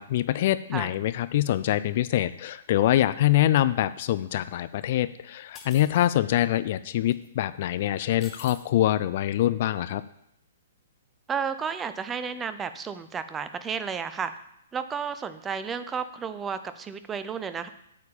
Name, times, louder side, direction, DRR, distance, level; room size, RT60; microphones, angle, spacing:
voice 1, 0.0-10.0, left 13 dB, 50° left, 14 dB, 0.4 m, -24 dB
sound 1, 5.5-6.1 7.1-7.3 8.2-8.6, left 5 dB, 20° left, 1.3 m, -47 dB
voice 2, 11.3-14.3 14.7-17.7, right 6 dB, 15° right, 11 dB, 0.6 m, -32 dB
8.2 x 4.3 x 7.0 m, 0.76 s
figure-of-eight pair, 120°, 0 cm